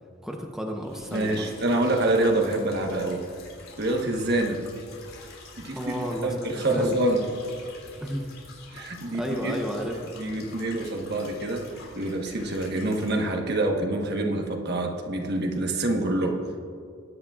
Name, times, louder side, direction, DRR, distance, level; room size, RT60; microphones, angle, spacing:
voice 1, 0.2-1.5 5.8-7.0 8.0-8.3 8.7-8.8 9.1-10.1, equal, ahead, 0 dB, 0.9 m, -32 dB
sound 1, 0.8-13.2, left 3 dB, 80° left, 3.3 m, -47 dB
voice 2, 1.1-3.3 3.8-4.6 5.6-6.0 6.2-7.2 8.7-9.6 10.2-11.7 11.9-16.4, right 1 dB, 55° right, 2 dB, 1.3 m, -26 dB
20.5 x 10.5 x 2.5 m, 2.3 s
head